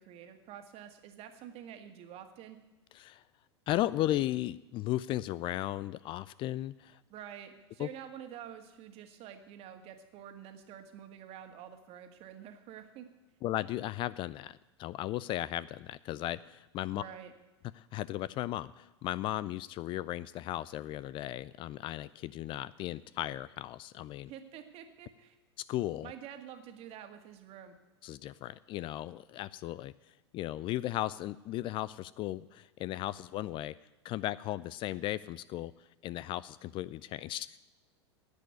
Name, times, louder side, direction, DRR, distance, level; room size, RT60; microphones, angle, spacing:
voice 1, 0.0-2.6 7.1-13.1 16.9-17.3 24.3-25.4 26.0-27.7, right 9 dB, 45° right, 6 dB, 1.8 m, -48 dB
voice 2, 3.7-7.0 7.8-7.9 13.4-17.0 17.7-24.3 25.7-26.1 28.0-33.7 34.0-37.6, left 14 dB, 35° left, 19 dB, 0.4 m, -36 dB
10.5 x 8.2 x 9.3 m, 1.0 s
hypercardioid pair, 95°, 15 cm